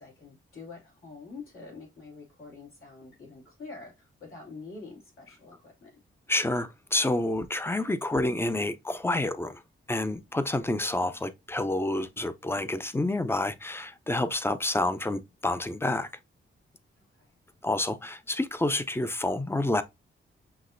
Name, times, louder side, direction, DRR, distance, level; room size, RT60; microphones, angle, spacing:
voice 1, 0.0-5.9 17.1-17.4, left 4 dB, 85° left, 2.6 m, -46 dB
voice 2, 6.3-9.6 9.9-16.1 17.6-19.8, left 2 dB, 10° left, 0.4 m, -28 dB
5.8 x 2.9 x 2.5 m
wide cardioid pair, 110°, 21 cm